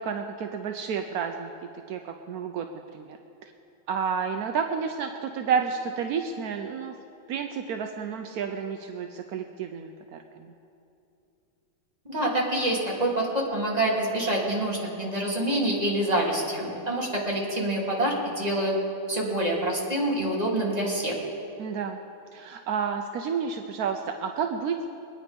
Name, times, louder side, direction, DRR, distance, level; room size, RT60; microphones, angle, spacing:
voice 1, 0.0-1.5 1.9-2.7 2.9-3.2 3.9-6.9 7.3-10.5 21.6-22.0 22.3-24.9, right 6 dB, 70° right, 5 dB, 0.8 m, -30 dB
voice 2, 12.0-18.7 19.1-21.2, right 1 dB, 20° right, -4 dB, 2.7 m, -26 dB
22.5 x 9.7 x 5.2 m, 2.7 s
omnidirectional pair, 2.3 m